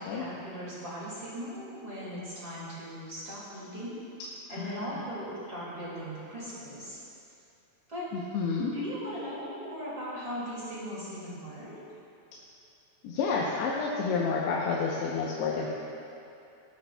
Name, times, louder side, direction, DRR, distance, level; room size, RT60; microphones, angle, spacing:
voice 1, 0.0-3.9 4.5-7.0 7.9-8.1 8.6-11.8, equal, 30° right, -8 dB, 2.0 m, -38 dB
voice 2, 4.5-5.0 8.1-8.7 13.0-15.7, left 5 dB, 85° left, -4 dB, 2.9 m, -30 dB
19.0 x 8.8 x 2.2 m, 2.6 s
omnidirectional pair, 4.6 m